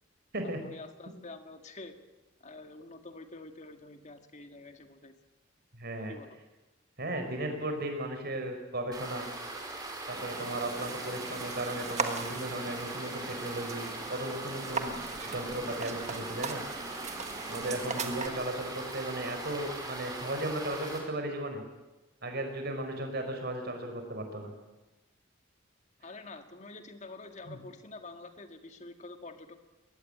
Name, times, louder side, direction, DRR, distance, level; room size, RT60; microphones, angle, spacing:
voice 1, 0.4-2.0 2.4-5.2 6.1-6.4 17.7-17.8 18.2-18.5 26.0-29.6, left 3 dB, 35° left, 6 dB, 1.9 m, -47 dB
voice 2, 5.7-6.2 7.0-9.3 10.1-15.0 15.3-16.6 17.5-21.6 22.2-24.5 27.5-27.6, right 1 dB, 55° right, 5 dB, 5.0 m, -36 dB
sound 1, 8.9-21.0, right 2 dB, 20° right, 5.3 m, -40 dB
sound 2, 10.1-18.3, right 4 dB, 35° right, 1.6 m, -39 dB
22.5 x 18.5 x 8.7 m, 1.1 s
head